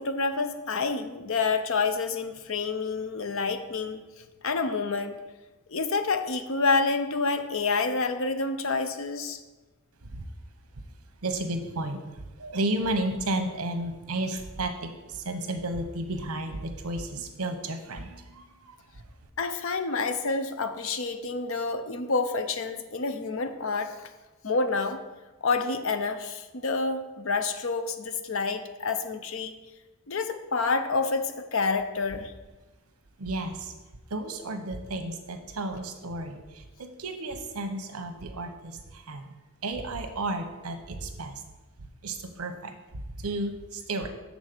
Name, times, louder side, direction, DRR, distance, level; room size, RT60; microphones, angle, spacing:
voice 1, 0.0-4.0 4.4-5.1 5.7-9.4 19.4-24.1 24.4-25.0 25.4-29.5 30.1-32.3, left 4 dB, 60° left, 8 dB, 0.6 m, -28 dB
voice 2, 11.2-19.0 33.2-33.7 34.1-39.3 39.6-41.4 42.0-44.1, right 2 dB, 80° right, 7 dB, 0.9 m, -33 dB
7.2 x 4.1 x 6.6 m, 1.2 s
head